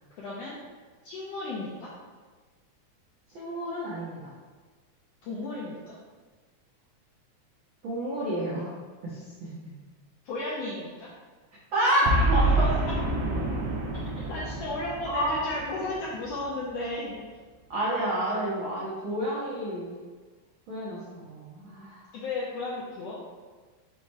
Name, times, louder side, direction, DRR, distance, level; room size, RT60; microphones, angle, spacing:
voice 1, 0.2-0.6 1.0-1.9 5.2-6.0 10.2-11.1 12.5-12.9 14.3-17.3 22.1-23.2, left 2 dB, 85° left, -5 dB, 1.4 m, -34 dB
voice 2, 3.3-4.3 7.8-8.7 9.0-9.7 11.7-12.7 15.0-15.4 17.7-19.9 20.7-22.0, right 1 dB, 90° right, -7 dB, 1.1 m, -29 dB
Boom, 12.0-16.4, right 2 dB, 70° right, 1.7 m, -27 dB
5.5 x 2.1 x 4.5 m, 1.4 s
omnidirectional pair, 3.5 m